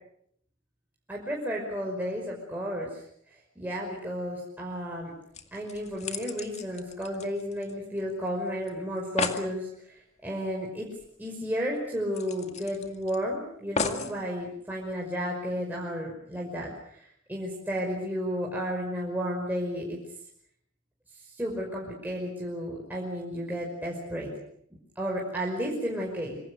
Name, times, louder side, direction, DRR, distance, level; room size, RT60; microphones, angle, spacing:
voice 1, 1.1-3.0 3.6-5.1 5.5-9.7 10.2-10.9 11.2-16.7 17.3-20.0 21.4-24.3 25.0-26.4, equal, 10° right, -3 dB, 5.6 m, -32 dB
sound 1, 5.0-5.1 5.3-8.0 8.3-8.4 8.7-8.8 9.0-9.5 11.0-11.1 11.4-11.5 12.1-13.2 13.8-14.2 14.9-15.0, left 4 dB, 35° left, 2.2 m, -34 dB
26.0 x 26.0 x 6.7 m, 0.69 s
head